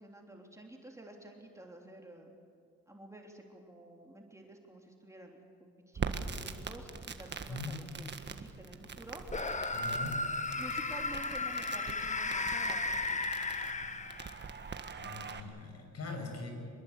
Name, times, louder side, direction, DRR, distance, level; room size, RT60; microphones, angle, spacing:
voice 1, 0.0-2.3 2.9-9.2 10.6-13.2, right 1 dB, 10° right, 1 dB, 3.2 m, -51 dB
Crackle, 5.9-15.4, right 5 dB, 35° right, 1.6 m, -43 dB
sound 1, 9.3-14.5, left 3 dB, 25° left, 1.4 m, -35 dB
voice 2, 9.7-10.2 15.0-16.5, left 3 dB, 55° left, 4 dB, 6.1 m, -41 dB
25.0 x 21.5 x 8.2 m, 2.3 s
cardioid pair, 90°, 30 cm